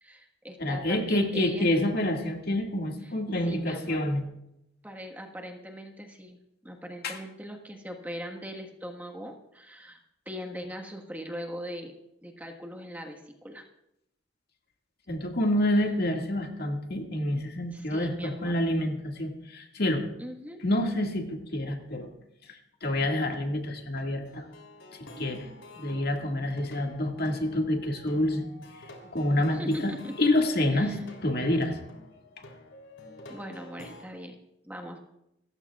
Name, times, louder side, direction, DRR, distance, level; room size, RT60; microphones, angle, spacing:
voice 1, 0.0-1.7 3.0-3.1 3.4-4.0 4.8-6.4 6.6-10.0 10.2-11.9 12.2-13.6 15.7-15.8 17.7-18.6 20.2-20.6 29.5-30.3 30.7-31.0 33.3-34.4 34.6-35.0, equal, 10° right, 2 dB, 1.5 m, -40 dB
voice 2, 0.6-4.2 7.0-7.2 15.1-20.0 20.6-22.1 22.5-24.4 25.2-25.5 25.8-28.5 29.1-29.9 30.2-31.8, left 1 dB, 55° left, 2 dB, 2.0 m, -27 dB
Plucked string instrument, 24.3-34.1, left 1 dB, 85° left, 3.4 m, -49 dB
27.5 x 14.5 x 2.4 m, 0.83 s
head